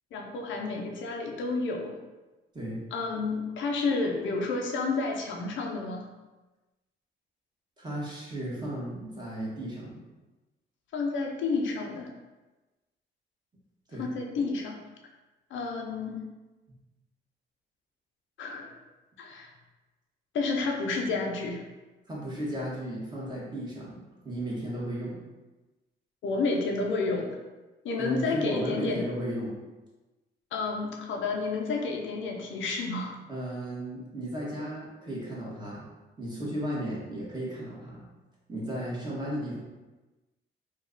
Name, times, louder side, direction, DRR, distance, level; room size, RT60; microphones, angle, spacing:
voice 1, 0.1-2.0 2.9-6.1 10.9-12.1 14.0-14.8 15.5-16.2 18.4-18.8 19.2-19.5 20.3-21.6 26.2-27.4 27.8-29.0 30.5-33.2, left 3 dB, 75° left, 1 dB, 0.6 m, -30 dB
voice 2, 7.8-10.0 13.9-14.1 22.1-25.2 28.0-29.5 33.3-35.9 36.2-38.0 38.5-39.6, right 1 dB, 20° right, -6 dB, 1.3 m, -35 dB
2.9 x 2.4 x 3.8 m, 1.1 s
cardioid pair, 90°, 20 cm